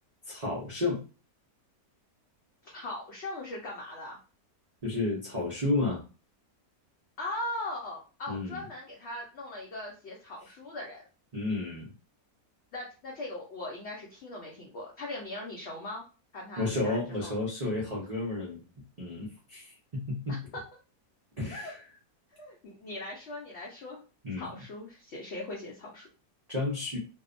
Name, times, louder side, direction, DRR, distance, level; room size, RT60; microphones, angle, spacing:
voice 1, 0.3-1.0 4.8-6.0 8.3-8.6 11.3-11.9 16.6-18.6 19.0-20.4 21.4-21.8 24.2-24.6 26.5-27.0, left 2 dB, 80° right, -5 dB, 0.3 m, -32 dB
voice 2, 2.6-4.2 7.2-11.0 12.7-16.0 16.3-17.3 20.3-20.6 21.5-21.7 22.4-24.0 24.4-26.1, left 2 dB, 65° left, -2 dB, 0.6 m, -39 dB
2.7 x 2.0 x 2.5 m, 0.34 s
omnidirectional pair, 1.7 m